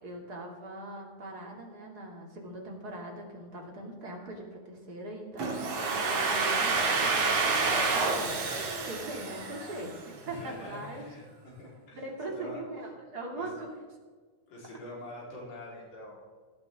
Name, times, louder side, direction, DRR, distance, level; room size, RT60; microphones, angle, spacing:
voice 1, 0.0-11.0 12.0-13.8, right 1 dB, 35° right, 0 dB, 2.7 m, -41 dB
Domestic sounds home sounds, 5.4-10.2, right 4 dB, 85° right, 3.3 m, -28 dB
voice 2, 8.9-9.9 10.3-12.0 12.3-12.6 13.3-13.5 14.5-16.2, left 1 dB, 80° left, -6 dB, 5.3 m, -45 dB
18.0 x 12.0 x 3.6 m, 1.5 s
omnidirectional pair, 3.4 m